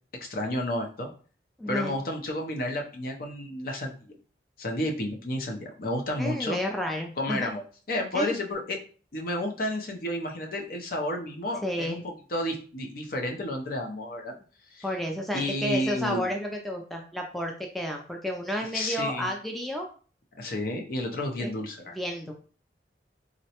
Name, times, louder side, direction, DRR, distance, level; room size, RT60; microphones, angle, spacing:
voice 1, 0.2-1.1 1.7-4.1 4.6-6.6 7.2-7.6 7.9-8.8 9.1-14.3 14.7-14.9 15.3-16.3 18.7-19.3 20.4-22.0, left 1 dB, 55° left, 2 dB, 0.6 m, -31 dB
voice 2, 1.6-2.0 6.2-7.5 8.1-8.4 11.6-12.1 14.8-19.9 21.4-21.5 21.9-22.3, equal, ahead, 1 dB, 0.3 m, -31 dB
3.8 x 2.1 x 2.8 m, 0.40 s
head